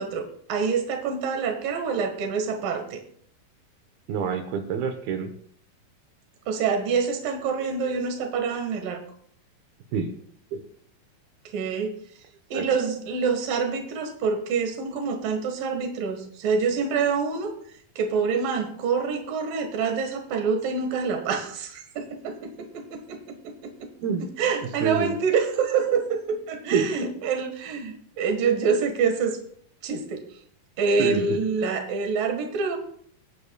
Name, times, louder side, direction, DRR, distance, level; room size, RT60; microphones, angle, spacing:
voice 1, 0.0-3.0 6.5-9.0 11.5-11.9 12.5-17.5 18.0-23.9 24.2-29.4 29.8-30.2 30.8-32.8, right 5 dB, 70° right, 5 dB, 3.1 m, -26 dB
voice 2, 4.1-5.3 9.9-10.1 10.5-10.6 12.5-12.7 24.0-24.2 24.8-25.1 26.7-26.9 31.0-31.4, right 6 dB, 85° right, 6 dB, 2.9 m, -26 dB
25.0 x 10.0 x 2.3 m, 0.62 s
omnidirectional pair, 4.2 m